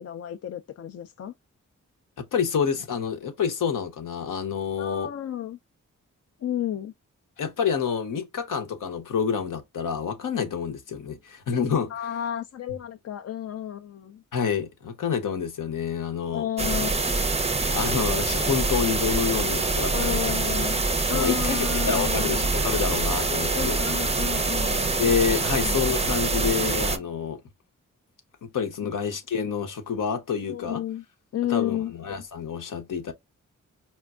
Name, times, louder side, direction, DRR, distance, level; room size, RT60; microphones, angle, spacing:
voice 1, 0.0-1.3 4.8-5.6 6.4-6.9 11.9-14.2 16.3-17.0 19.9-22.5 23.5-25.1 25.6-26.5 28.8-28.9 30.4-31.0 31.3-31.9, left 11 dB, 50° left, 0.4 m, -32 dB
voice 2, 2.2-5.1 7.4-11.9 14.3-16.5 17.7-20.3 21.1-23.8 25.0-27.4 28.4-30.8 31.5-33.1, left 6 dB, 75° left, 0.8 m, -28 dB
sound 1, 16.6-27.0, right 3 dB, 20° right, 0.5 m, -25 dB
4.3 x 2.2 x 2.2 m
supercardioid pair, 40°, 32 cm